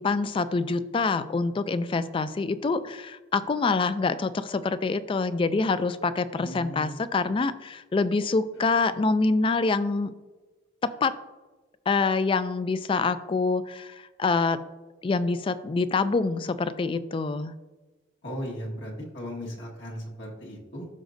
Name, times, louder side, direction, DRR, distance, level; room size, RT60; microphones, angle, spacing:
voice 1, 0.0-10.1 10.8-11.1 11.9-14.6 15.0-17.5, left 4 dB, 30° left, 14 dB, 0.3 m, -26 dB
voice 2, 6.4-7.0 8.6-8.7 18.2-20.9, equal, 65° left, -2 dB, 1.6 m, -37 dB
13.0 x 5.1 x 2.6 m, 1.2 s
head